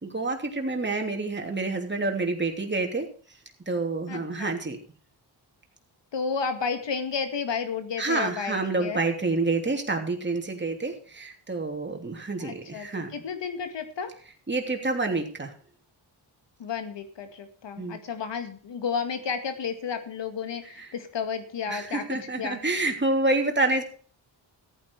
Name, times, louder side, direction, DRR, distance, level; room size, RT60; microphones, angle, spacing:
voice 1, 0.0-3.1 3.7-4.8 8.0-13.1 14.5-15.5 17.8-18.0 20.8-20.9 21.7-23.8, right 3 dB, 25° right, 3 dB, 3.0 m, -28 dB
voice 2, 4.1-4.5 6.1-9.0 12.4-14.1 16.6-22.0 22.4-22.6, left 6 dB, 70° left, 8 dB, 2.1 m, -32 dB
14.5 x 9.2 x 4.7 m, 0.43 s
cardioid pair, 75°, 44 cm